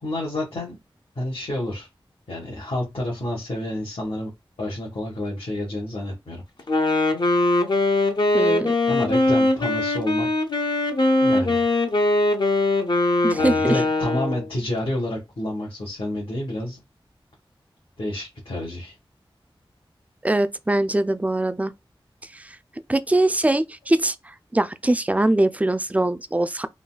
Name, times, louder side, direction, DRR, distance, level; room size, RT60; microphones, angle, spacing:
voice 1, 0.0-0.8 1.1-1.9 2.3-4.3 4.6-6.4 8.8-10.3 11.2-11.7 13.4-16.8 18.0-18.9, left 1 dB, 80° left, 1.3 m, -29 dB
Wind instrument woodwind instrument, 6.6-14.5, left 2 dB, 55° left, 0.6 m, -21 dB
voice 2, 8.3-8.7 13.2-13.8 20.2-21.7 22.3-22.6 22.9-26.7, right 1 dB, 15° right, 0.3 m, -22 dB
3.8 x 2.2 x 2.2 m
wide cardioid pair, 60°, 9 cm